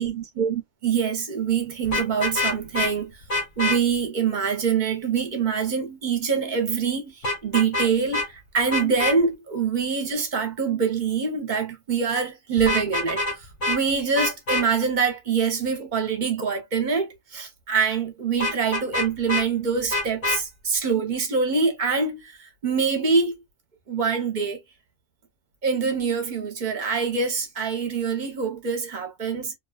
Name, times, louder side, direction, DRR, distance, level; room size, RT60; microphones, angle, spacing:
voice 1, 0.0-3.2 3.6-23.4 23.9-24.6 25.6-29.5, right 5 dB, 45° right, 0.8 m, -25 dB
Vehicle horn car horn honking, 1.8-2.9 3.3-3.8 7.2-8.3 8.7-9.2 12.6-13.4 13.6-13.8 14.2-14.6 18.4-19.5 19.9-20.4, left 2 dB, 85° left, 1.3 m, -25 dB
2.7 x 2.2 x 2.2 m
omnidirectional pair, 1.2 m